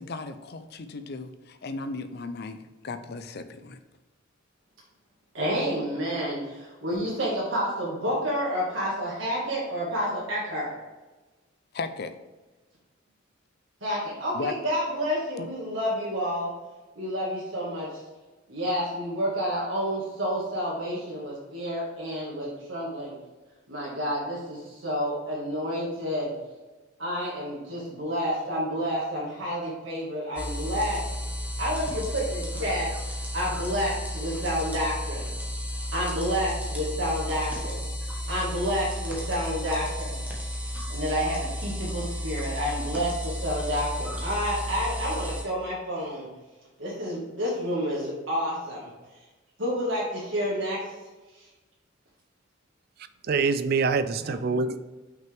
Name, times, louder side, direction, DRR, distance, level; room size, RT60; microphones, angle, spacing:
voice 1, 0.0-3.8 11.7-12.1 14.3-14.5 15.4-15.5, left 3 dB, 55° left, 10 dB, 0.5 m, -36 dB
voice 2, 5.3-10.7 13.8-16.5 17.0-17.9 18.5-23.1 23.7-26.3 27.0-31.0 31.6-35.3 35.9-37.8 38.3-40.2 40.9-46.3 46.8-48.9 49.6-50.8 54.2-54.3, equal, 70° right, -6 dB, 1.9 m, -29 dB
sound 1, 30.4-45.4, equal, 10° right, 1.3 m, -33 dB
voice 3, 53.3-54.8, right 4 dB, 50° right, 12 dB, 0.4 m, -25 dB
6.0 x 5.8 x 3.5 m, 1.2 s
head